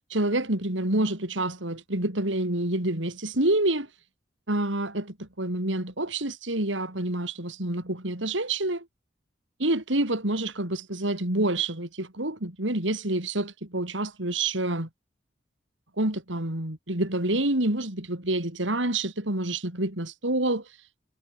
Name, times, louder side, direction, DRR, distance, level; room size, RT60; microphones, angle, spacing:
voice 1, 0.1-3.9 4.5-8.9 9.6-14.9 16.0-20.6, right 1 dB, 80° right, 4.3 m, -27 dB
head